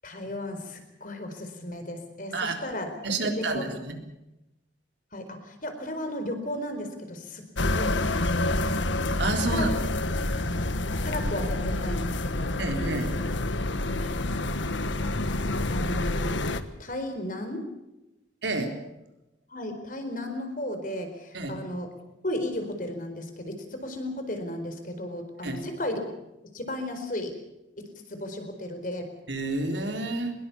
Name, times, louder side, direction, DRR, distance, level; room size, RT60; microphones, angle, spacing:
voice 1, 0.0-3.0 3.2-3.7 5.1-8.7 9.5-9.8 11.0-12.5 14.0-14.2 15.7-16.3 16.8-17.7 19.5-21.9 22.2-26.1 26.5-27.4 27.8-29.1, left 1 dB, 45° left, 6 dB, 4.4 m, -34 dB
voice 2, 3.0-4.0 9.2-9.7 12.6-13.1 18.4-18.7 21.3-21.6 25.4-25.7 29.3-30.3, right 2 dB, 70° right, 4 dB, 3.8 m, -29 dB
sound 1, 7.6-16.6, left 2 dB, 80° left, 1.5 m, -28 dB
23.5 x 21.5 x 7.1 m, 0.94 s
head